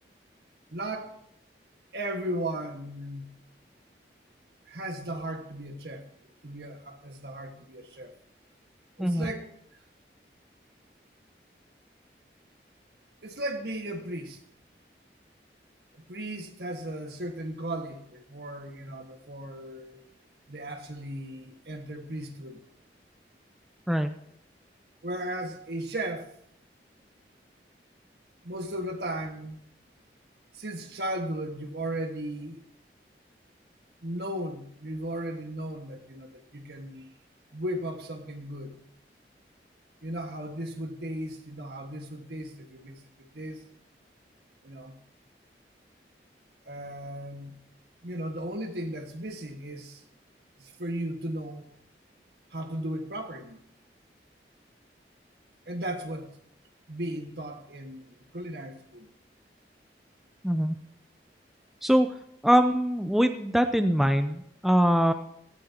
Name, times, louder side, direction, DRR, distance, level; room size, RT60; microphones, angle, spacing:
voice 1, 0.7-1.1 1.9-3.3 4.7-6.1 6.4-8.1 9.0-9.4 13.2-14.4 15.9-20.0 20.5-22.6 25.0-26.3 28.4-29.6 30.5-32.6 34.0-37.1 37.5-38.8 40.0-43.0 43.3-43.6 44.6-44.9 46.7-47.6 48.0-50.0 50.6-51.6 52.5-53.6 55.7-56.3 56.9-59.1, right 1 dB, 70° right, 4 dB, 1.7 m, -36 dB
voice 2, 9.0-9.3 23.9-24.1 60.4-60.7 61.8-62.1 62.4-65.1, equal, ahead, 7 dB, 0.5 m, -23 dB
16.5 x 13.5 x 2.9 m, 0.72 s
head